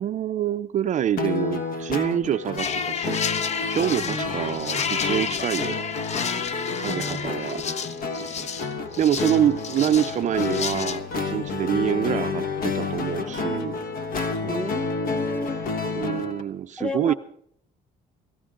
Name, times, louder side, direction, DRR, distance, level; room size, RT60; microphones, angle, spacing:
voice 1, 0.0-3.2 3.7-5.8 6.7-7.6 9.0-13.7 16.0-17.1, right 10 dB, 45° right, 10 dB, 0.5 m, -26 dB
sound 1, 1.2-16.4, left 4 dB, 60° left, 1.0 m, -30 dB
sound 2, 2.6-11.0, left 6 dB, 40° left, 0.7 m, -30 dB
voice 2, 6.9-8.5 14.4-15.6 16.8-17.1, left 2 dB, 5° left, 9 dB, 0.9 m, -33 dB
17.5 x 15.5 x 3.8 m, 0.67 s
cardioid pair, 110°, 17 cm